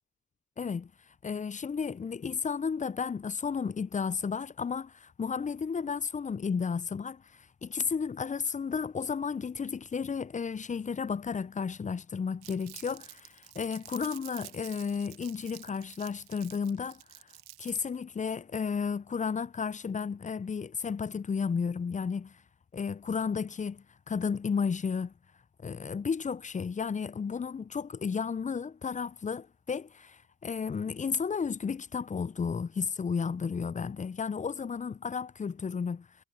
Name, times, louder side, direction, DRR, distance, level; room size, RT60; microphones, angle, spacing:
voice 1, 0.6-0.9 1.2-7.2 7.6-17.0 17.6-22.3 22.7-25.1 25.6-36.1, left 6 dB, 20° left, 0.6 m, -33 dB
Crumpling crinkling, 12.4-17.9, right 18 dB, 65° right, 1.3 m, -49 dB
hypercardioid pair, 60°, 41 cm